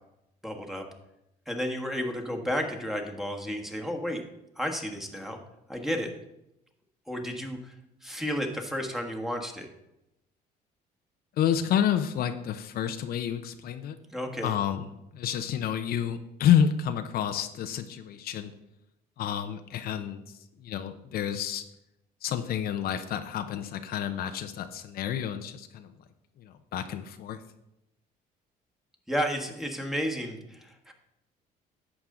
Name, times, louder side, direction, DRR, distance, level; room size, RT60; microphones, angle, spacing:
voice 1, 0.4-0.8 1.5-4.2 4.6-5.4 5.7-6.1 7.1-7.7 8.0-9.7 14.1-14.5 29.1-30.9, equal, ahead, 2 dB, 1.5 m, -32 dB
voice 2, 11.4-14.0 14.4-14.9 15.1-18.5 19.2-20.2 20.6-21.6 22.2-25.9 26.4-27.4, left 9 dB, 65° left, 8 dB, 0.7 m, -29 dB
11.0 x 7.2 x 3.8 m, 0.86 s
cardioid pair, 110°, 17 cm